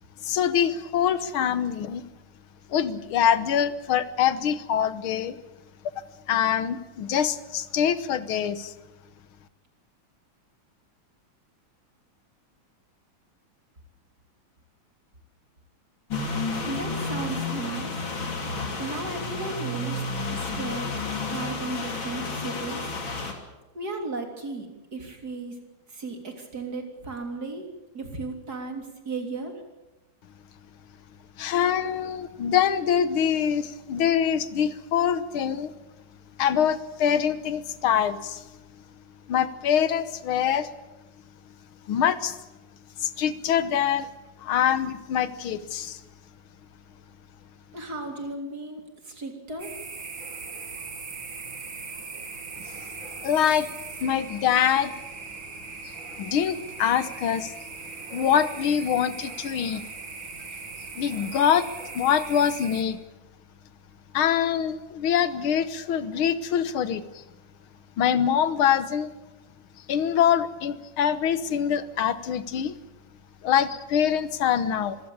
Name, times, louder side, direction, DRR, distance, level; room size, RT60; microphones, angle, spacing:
voice 1, 0.2-2.1 2.7-5.4 6.3-8.7 31.4-35.8 36.4-38.4 39.3-40.7 41.9-42.4 43.0-44.1 44.4-46.0 53.2-53.7 54.0-54.9 56.2-57.5 58.1-59.8 61.0-61.7 61.9-63.0 64.1-67.0 68.0-69.1 69.9-72.8 73.4-75.0, left 9 dB, 85° left, 14 dB, 1.9 m, -24 dB
sound 1, 16.1-23.3, left 3 dB, 70° left, 3.7 m, -31 dB
voice 2, 16.6-17.9 18.8-20.0 20.3-20.9 21.3-22.8 23.7-25.5 25.9-27.7 27.9-29.5 47.7-49.7, right 3 dB, 45° right, 3 dB, 4.0 m, -35 dB
sound 2, 49.6-62.8, right 4 dB, 65° right, 3.3 m, -39 dB
25.5 x 16.0 x 8.6 m, 1.0 s
omnidirectional pair, 2.3 m